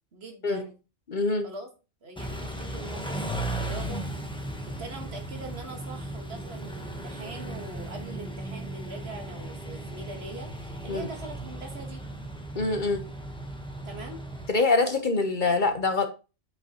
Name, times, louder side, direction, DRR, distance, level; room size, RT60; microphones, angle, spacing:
voice 1, 0.1-0.8 1.4-1.7 2.0-4.1 4.6-12.0 13.8-14.2 15.3-15.8, right 2 dB, 60° right, 4 dB, 1.7 m, -42 dB
voice 2, 1.1-1.5 10.9-11.1 12.5-13.0 14.5-16.1, left 3 dB, 45° left, 6 dB, 1.0 m, -24 dB
Car / Idling / Accelerating revving vroom, 2.2-14.5, right 1 dB, 5° left, 1.0 m, -36 dB
8.3 x 5.4 x 2.9 m, 0.30 s
omnidirectional pair, 1.2 m